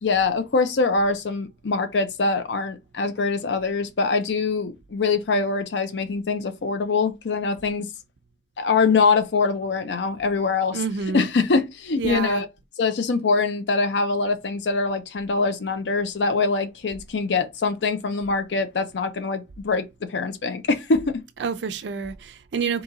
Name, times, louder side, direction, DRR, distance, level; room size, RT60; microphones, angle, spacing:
voice 1, 0.0-7.9 8.6-10.8 11.1-12.5 12.8-21.2, left 4 dB, 85° left, 0.5 m, -23 dB
voice 2, 10.7-11.3 11.9-12.4 21.4-22.8, right 5 dB, 80° right, 0.4 m, -28 dB
3.8 x 2.8 x 3.9 m
head